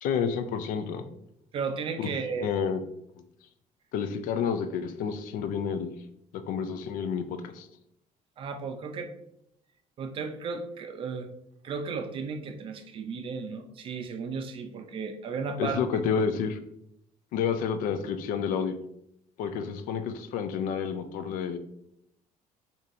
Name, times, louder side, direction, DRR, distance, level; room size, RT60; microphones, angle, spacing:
voice 1, 0.0-1.1 2.0-2.1 2.4-2.8 3.9-5.9 6.3-7.7 15.6-16.6 17.3-18.8 19.4-21.6, left 6 dB, 80° left, 9 dB, 0.4 m, -30 dB
voice 2, 1.5-2.5 8.4-9.1 10.0-11.3 11.6-15.8, right 5 dB, 40° right, 7 dB, 0.4 m, -34 dB
4.5 x 2.8 x 2.6 m, 0.77 s
cardioid pair, 160°, 14 cm